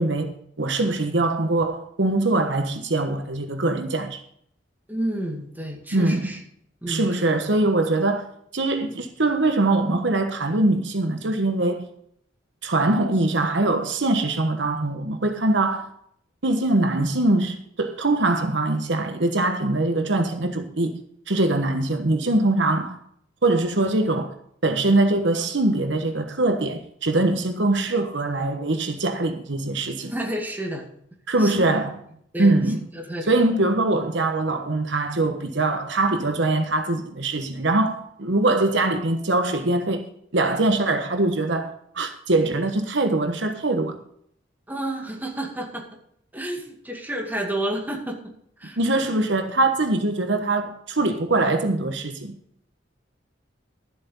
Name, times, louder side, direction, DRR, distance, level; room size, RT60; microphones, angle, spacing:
voice 1, 0.0-4.2 5.9-6.3 6.9-8.3 8.5-11.9 12.6-15.9 16.4-23.0 23.4-24.3 24.6-30.1 31.3-32.0 32.4-32.8 33.3-44.0 48.8-52.4, right 2 dB, 70° right, 1.2 m, -22 dB
voice 2, 4.9-6.4 6.8-7.1 21.5-21.6 30.1-30.9 31.4-31.7 32.3-32.6 32.9-33.3 44.7-46.0 46.3-48.3 48.6-48.8, right 1 dB, 10° right, 2.3 m, -30 dB
12.5 x 7.7 x 5.5 m
head